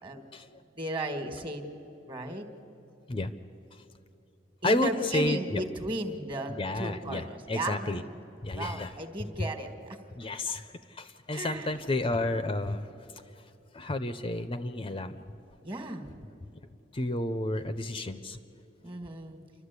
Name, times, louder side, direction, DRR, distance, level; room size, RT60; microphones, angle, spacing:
voice 1, 0.1-0.6 3.1-3.3 3.7-3.8 4.6-5.6 6.6-8.0 8.4-8.9 10.2-12.9 13.7-15.2 16.9-18.4, left 1 dB, 30° left, 10 dB, 0.6 m, -31 dB
voice 2, 0.8-1.6 2.1-2.4 4.6-8.0 8.5-9.7 11.3-11.7 15.6-16.2 18.8-19.4, right 1 dB, 30° right, 7 dB, 1.6 m, -35 dB
29.0 x 12.0 x 8.2 m, 2.8 s
head